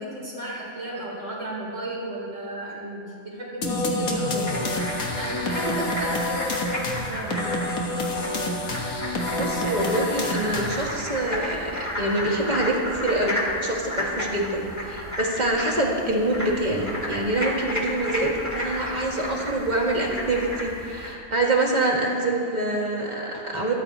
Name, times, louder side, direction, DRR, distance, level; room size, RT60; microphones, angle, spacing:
voice 1, 0.0-4.7 5.1-7.7, right 1 dB, 65° right, -5 dB, 4.1 m, -33 dB
sound 1, 3.6-11.0, left 2 dB, 85° left, 1.9 m, -28 dB
sound 2, 4.5-21.1, equal, 10° left, 2.3 m, -32 dB
voice 2, 9.4-23.7, right 2 dB, 30° right, -2 dB, 2.2 m, -25 dB
24.0 x 12.5 x 3.0 m, 2.4 s
omnidirectional pair, 1.5 m